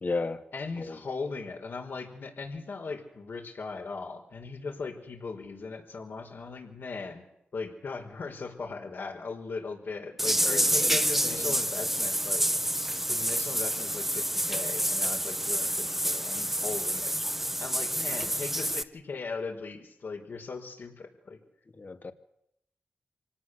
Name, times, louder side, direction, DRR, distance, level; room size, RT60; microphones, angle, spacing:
voice 1, 0.0-0.4 0.8-1.0 10.4-11.6 21.8-22.1, left 3 dB, 50° left, 8 dB, 2.5 m, -35 dB
voice 2, 0.5-7.2 7.5-12.5 13.1-17.1 17.6-21.4, left 4 dB, 70° left, 3 dB, 5.0 m, -38 dB
sound 1, 10.2-18.8, equal, 5° right, 1.3 m, -28 dB
26.0 x 18.5 x 8.2 m, 0.77 s
cardioid pair, 60°, 4 cm